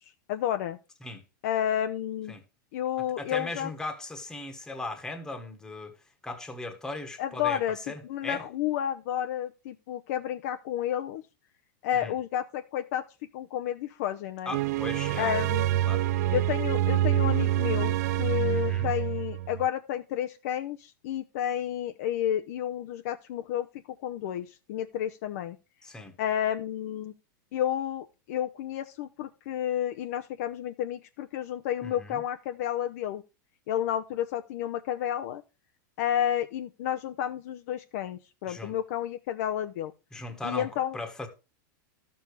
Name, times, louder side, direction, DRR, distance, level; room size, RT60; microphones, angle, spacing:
voice 1, 0.3-0.8 1.4-2.3 2.7-3.7 7.2-7.8 8.0-11.2 11.8-13.0 13.3-14.6 15.2-15.8 16.3-23.7 24.0-25.6 26.2-27.1 27.5-33.2 33.7-35.4 36.0-39.9 40.4-41.0, left 10 dB, 50° left, 0.7 m, -31 dB
voice 2, 3.2-5.9 6.2-8.4 11.9-12.1 14.4-15.4 15.8-16.1 18.5-18.9 25.8-26.1 31.8-32.2 38.5-38.7 40.1-40.7 40.9-41.3, left 2 dB, 5° left, 1.4 m, -38 dB
sound 1, 14.5-19.7, right 13 dB, 50° right, 0.5 m, -26 dB
13.0 x 7.0 x 4.7 m
supercardioid pair, 170°, 11 cm